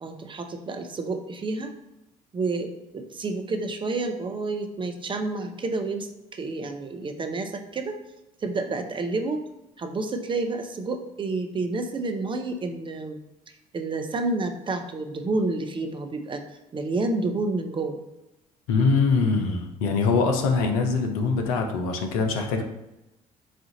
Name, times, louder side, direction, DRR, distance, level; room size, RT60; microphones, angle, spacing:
voice 1, 0.0-1.8 2.3-8.0 8.4-9.4 9.8-13.2 13.7-16.4 16.7-18.0, right 3 dB, 25° right, 6 dB, 0.6 m, -29 dB
voice 2, 18.7-22.6, left 4 dB, 70° left, 4 dB, 0.6 m, -23 dB
4.3 x 2.5 x 3.8 m, 0.92 s
figure-of-eight pair, 55°, 19 cm